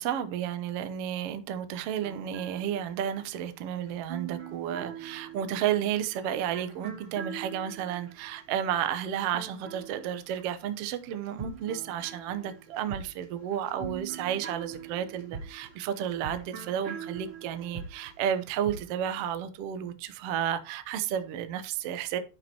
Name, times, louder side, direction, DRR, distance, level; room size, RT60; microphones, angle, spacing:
voice 1, 0.0-22.2, right 9 dB, 80° right, 1.3 m, -32 dB
sound 1, 2.0-10.8 11.1-18.9, right 7 dB, 45° right, 2.4 m, -43 dB
11.0 x 5.3 x 4.4 m
omnidirectional pair, 4.0 m